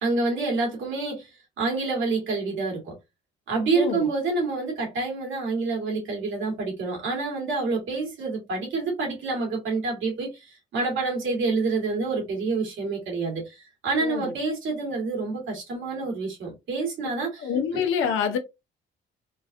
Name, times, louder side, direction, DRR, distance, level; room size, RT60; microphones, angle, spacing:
voice 1, 0.0-3.0 3.5-17.8, right 3 dB, 75° right, 2.0 m, -28 dB
voice 2, 3.7-4.1 14.0-14.3 17.4-18.4, left 7 dB, 85° left, 0.8 m, -26 dB
3.9 x 2.5 x 2.6 m
cardioid pair, 90°, 20 cm